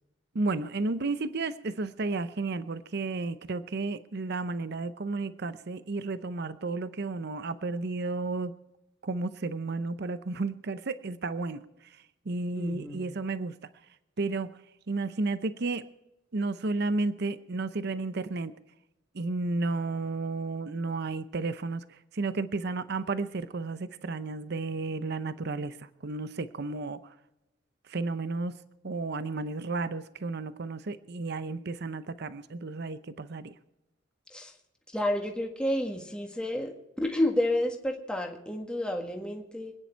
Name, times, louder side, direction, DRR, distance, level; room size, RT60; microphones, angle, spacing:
voice 1, 0.3-8.5 9.0-13.5 14.2-14.5 14.9-15.9 16.3-18.5 19.1-27.1 27.9-28.5 28.8-33.6, right 3 dB, 55° right, 13 dB, 0.7 m, -32 dB
voice 2, 12.5-13.1 34.3-34.5 34.9-39.7, left 1 dB, 5° left, 2 dB, 1.6 m, -30 dB
25.5 x 9.9 x 4.5 m, 0.93 s
head